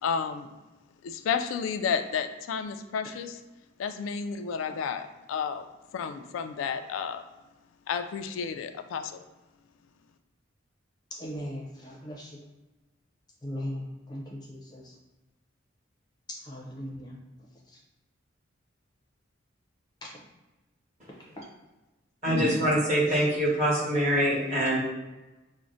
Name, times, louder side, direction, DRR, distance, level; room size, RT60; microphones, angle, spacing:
voice 1, 0.0-0.5 1.0-3.4 3.8-5.6 5.9-7.2 7.9-9.2, left 6 dB, 90° left, 9 dB, 0.3 m, -31 dB
voice 2, 11.1-12.4 13.4-14.8 16.5-17.2 20.0-20.1 21.4-21.5, equal, 20° left, -3 dB, 0.5 m, -38 dB
voice 3, 22.2-24.8, equal, 35° right, -7 dB, 1.3 m, -24 dB
5.8 x 2.1 x 2.6 m, 1.1 s
head